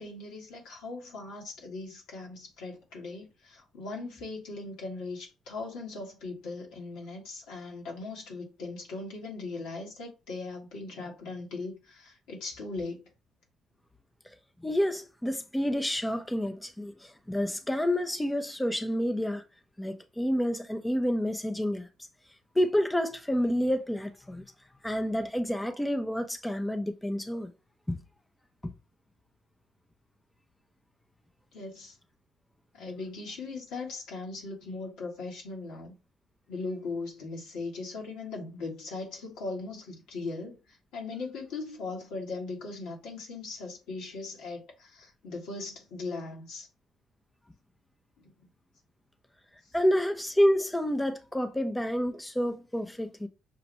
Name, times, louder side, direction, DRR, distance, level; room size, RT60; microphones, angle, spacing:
voice 1, 0.0-13.1 31.5-31.9 32.7-35.9 36.5-40.6 40.9-46.7 48.2-48.3, left 3 dB, 75° left, 1.6 m, -39 dB
voice 2, 14.6-19.4 19.8-21.9 22.6-24.4 24.8-27.5 27.9-28.0 28.6-28.7 49.7-53.3, equal, 10° left, 0.6 m, -29 dB
6.0 x 2.5 x 3.1 m
hypercardioid pair, 60°, 0 cm